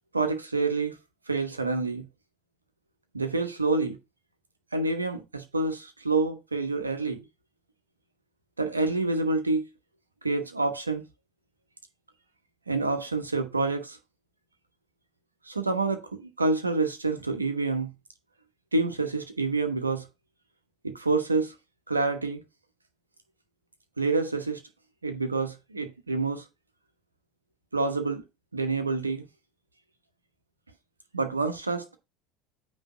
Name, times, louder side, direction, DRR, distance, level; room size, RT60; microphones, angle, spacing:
voice 1, 0.1-1.0 1.3-2.0 3.1-4.0 4.7-7.2 8.6-9.7 10.2-11.0 12.7-14.0 15.5-17.9 18.7-20.1 20.8-21.5 21.9-22.4 24.0-24.6 25.0-26.4 27.7-28.2 28.5-29.2 31.1-31.9, right 3 dB, 90° right, 1.1 m, -27 dB
9.1 x 3.3 x 5.5 m
figure-of-eight pair, 70°, 0 cm